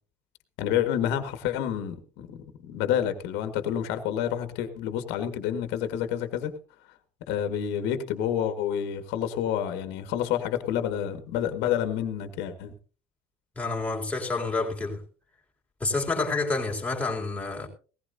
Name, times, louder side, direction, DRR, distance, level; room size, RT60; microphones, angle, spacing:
voice 1, 0.6-2.4 2.6-6.5 7.3-12.7, left 10 dB, 70° left, 1.7 m, -28 dB
voice 2, 13.6-15.0 15.8-17.7, left 3 dB, 10° left, 3.5 m, -28 dB
18.5 x 15.0 x 2.7 m
supercardioid pair, 110°, 18 cm